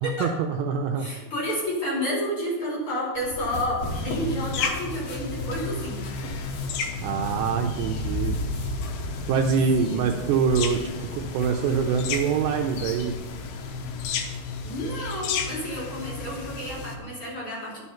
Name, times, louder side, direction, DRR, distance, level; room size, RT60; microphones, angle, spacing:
voice 1, 0.0-1.1 7.0-8.3 9.3-13.1, right 6 dB, 85° right, 4 dB, 2.5 m, -25 dB
voice 2, 1.0-6.1 9.8-10.3 14.6-17.8, equal, 35° left, -5 dB, 3.3 m, -30 dB
sound 1, 3.1-14.0, left 1 dB, 55° left, 1.9 m, -40 dB
sound 2, 3.8-17.0, left 3 dB, 75° left, 2.3 m, -32 dB
11.0 x 6.3 x 5.7 m, 1.2 s
omnidirectional pair, 5.3 m